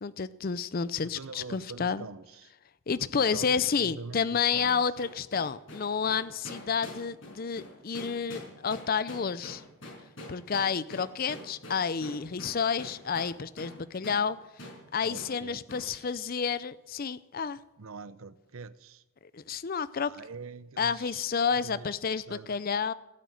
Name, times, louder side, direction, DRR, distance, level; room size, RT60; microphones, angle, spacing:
voice 1, 0.0-2.1 2.9-9.6 10.3-14.4 14.9-17.6 19.3-20.1 20.8-22.9, left 6 dB, 45° left, 0.5 m, -30 dB
voice 2, 1.0-2.5 3.0-4.8 15.0-16.4 17.8-19.0 20.0-21.9 22.3-22.6, right 4 dB, 75° right, 0.7 m, -45 dB
sound 1, 4.6-13.8 14.0-14.2 14.6-14.8 15.1-15.3 15.7-15.9, left 1 dB, 60° left, 5.8 m, -45 dB
17.0 x 8.0 x 9.2 m
head